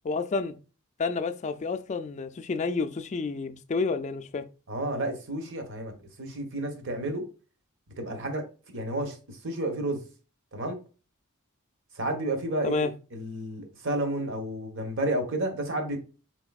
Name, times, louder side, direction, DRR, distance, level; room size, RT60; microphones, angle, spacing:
voice 1, 0.0-0.5 1.0-4.5 12.6-12.9, left 4 dB, 35° left, 0.3 m, -30 dB
voice 2, 4.7-5.9 6.2-7.2 8.0-10.0 10.5-10.8 11.9-16.0, right 1 dB, 60° right, 1.0 m, -31 dB
4.7 x 3.9 x 2.3 m
head